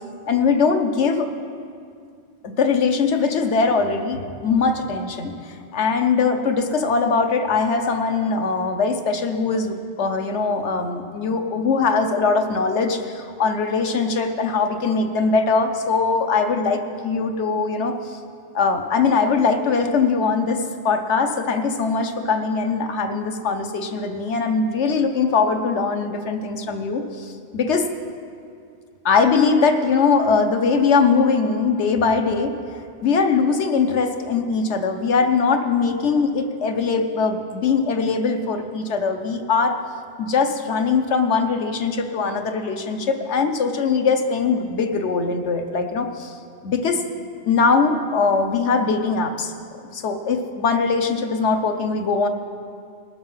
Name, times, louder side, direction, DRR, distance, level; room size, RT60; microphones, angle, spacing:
voice 1, 0.3-1.3 2.4-18.2 18.5-27.9 29.0-32.5 33.0-39.8 40.2-46.4 46.6-47.0 47.4-49.5 49.9-52.3, left 4 dB, 75° left, 5 dB, 1.2 m, -21 dB
19.0 x 6.8 x 5.6 m, 2.3 s
omnidirectional pair, 1.2 m